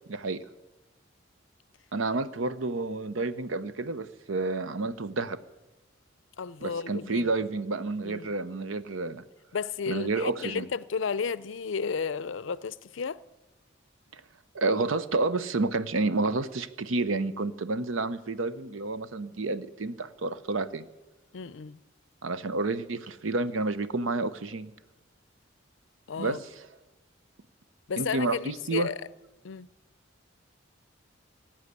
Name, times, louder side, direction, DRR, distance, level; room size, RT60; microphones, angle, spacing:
voice 1, 0.1-0.4 1.9-5.4 6.6-9.2 9.9-10.7 14.1-14.2 14.5-20.9 22.2-24.7 26.2-26.5 28.0-28.9, right 3 dB, 85° right, 0.8 m, -30 dB
voice 2, 6.4-7.3 8.0-8.3 9.5-13.2 21.3-21.8 26.1-26.4 27.9-29.0 29.4-29.7, left 5 dB, 75° left, 0.5 m, -33 dB
17.5 x 8.8 x 8.2 m
head